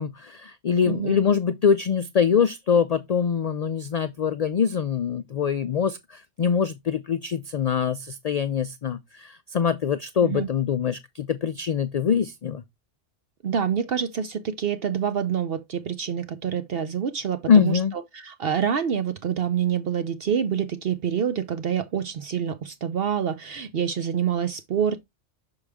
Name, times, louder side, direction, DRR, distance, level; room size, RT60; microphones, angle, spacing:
voice 1, 0.0-12.6 17.5-17.9, left 7 dB, 75° left, 0.3 m, -23 dB
voice 2, 0.9-1.2 10.2-10.5 13.4-25.0, right 8 dB, 60° right, 0.8 m, -27 dB
6.2 x 4.8 x 3.4 m
omnidirectional pair, 1.2 m